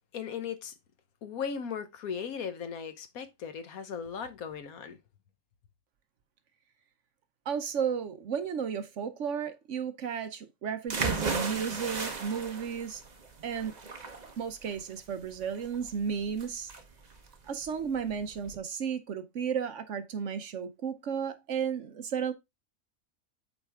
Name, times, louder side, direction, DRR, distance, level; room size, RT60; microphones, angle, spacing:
voice 1, 0.1-0.7 1.2-5.0, left 7 dB, 75° left, 1.4 m, -37 dB
voice 2, 7.5-13.0 13.4-13.7 14.4-16.7 17.5-22.3, right 7 dB, 60° right, 1.0 m, -33 dB
sound 1, 10.9-18.6, right 4 dB, 35° right, 1.0 m, -36 dB
7.9 x 4.5 x 3.5 m
omnidirectional pair, 1.5 m